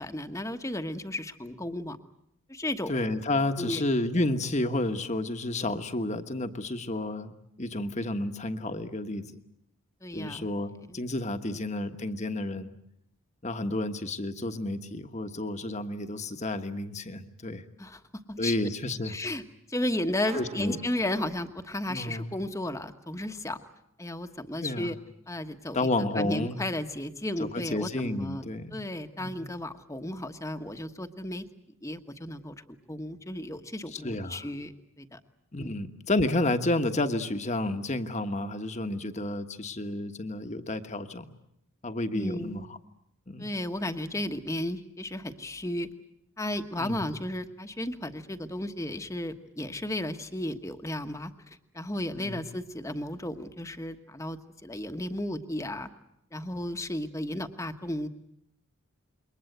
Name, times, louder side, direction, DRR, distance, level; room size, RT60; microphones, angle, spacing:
voice 1, 0.0-2.0 2.5-2.9 3.6-3.8 10.0-10.5 10.9-11.0 11.4-11.6 17.8-18.0 18.3-18.6 19.1-19.4 19.7-23.6 24.0-25.0 25.3-25.9 26.1-28.4 28.7-31.4 31.8-32.6 32.9-34.7 35.0-35.2 35.6-35.7 42.1-42.7 43.4-45.9 46.4-51.3 51.7-55.9 56.3-58.1, left 1 dB, 15° left, 8 dB, 1.2 m, -34 dB
voice 2, 2.9-7.3 7.6-9.2 10.1-12.7 13.4-17.6 18.4-19.1 20.3-20.8 21.9-22.3 24.6-24.9 25.7-26.6 27.4-28.8 29.2-29.3 33.9-34.4 35.5-41.3 41.8-42.7 43.3-43.5 46.8-47.0 52.2-52.4, left 2 dB, 30° left, 8 dB, 1.3 m, -31 dB
sound 1, 20.2-22.0, right 3 dB, 30° right, 1.4 m, -46 dB
28.0 x 23.0 x 8.0 m, 0.77 s
head